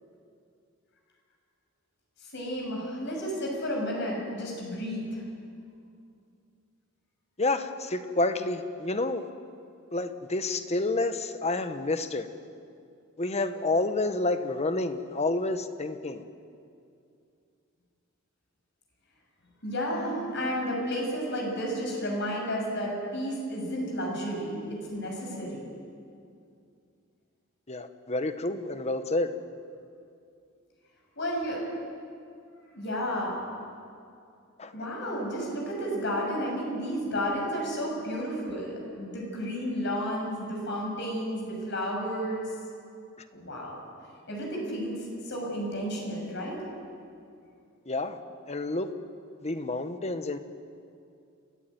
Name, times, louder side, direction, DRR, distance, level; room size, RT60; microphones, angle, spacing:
voice 1, 2.3-5.2 19.6-25.6 31.2-31.6 32.7-33.4 34.7-42.5 43.3-43.7 44.3-45.0 45.2-46.6, equal, 60° left, -1 dB, 6.6 m, -32 dB
voice 2, 7.4-9.3 9.9-12.3 13.2-16.2 27.7-29.3 34.6-34.7 47.9-48.2 48.5-48.9 49.4-50.4, left 2 dB, 35° left, 9 dB, 1.2 m, -29 dB
29.5 x 13.5 x 9.4 m, 2.5 s
head